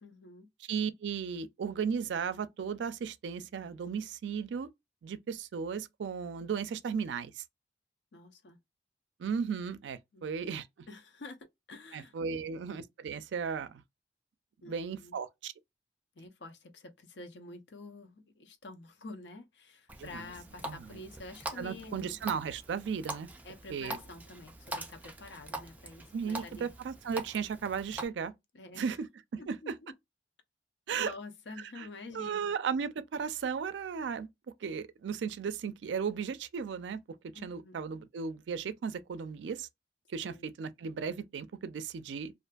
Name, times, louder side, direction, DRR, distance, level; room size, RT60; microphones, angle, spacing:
voice 1, 0.0-0.5 8.1-8.6 10.1-10.6 10.9-11.4 11.7-12.6 14.6-15.2 16.2-22.2 23.4-26.8 28.5-28.8 29.4-30.0 31.0-32.5 37.3-37.8 40.2-40.4, left 2 dB, 70° left, 0.6 m, -48 dB
voice 2, 0.7-4.7 5.0-7.4 9.2-10.7 11.9-13.8 14.7-15.5 20.0-20.3 20.6-21.0 21.6-23.3 23.7-24.0 26.1-28.3 28.8-29.1 29.3-29.7 30.9-31.1 31.8-31.9 32.1-34.3 34.6-37.0 37.4-39.7 40.1-42.3, right 6 dB, 80° right, 0.4 m, -35 dB
Water tap faucet, 19.9-28.1, right 1 dB, 10° right, 0.4 m, -44 dB
2.5 x 2.5 x 2.2 m
head